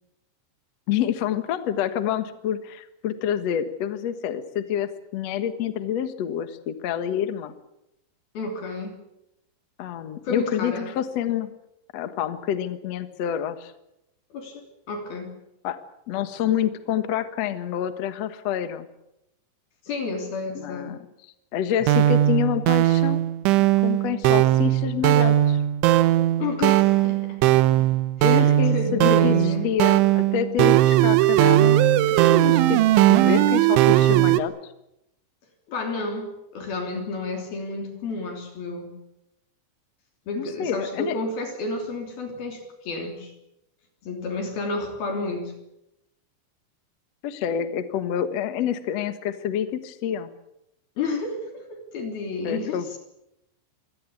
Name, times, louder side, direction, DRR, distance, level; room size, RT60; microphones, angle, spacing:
voice 1, 0.9-7.5 9.8-11.5 11.9-13.7 15.6-15.8 16.1-18.9 20.5-21.0 21.5-23.2 23.8-25.6 28.2-29.4 29.6-31.8 32.2-32.8 33.1-34.5 40.3-41.2 47.2-50.3 52.4-52.8, left 10 dB, 80° left, 10 dB, 1.5 m, -27 dB
voice 2, 8.3-9.0 10.2-10.9 14.3-15.3 19.9-20.9 26.4-27.4 27.8-27.9 28.2-29.7 35.7-38.9 40.3-43.3 44.0-45.5 51.0-53.0, left 3 dB, 55° left, 3 dB, 4.8 m, -31 dB
sound 1, 21.8-34.4, right 14 dB, 85° right, 3.4 m, -19 dB
26.0 x 17.5 x 8.5 m, 0.87 s
omnidirectional pair, 5.3 m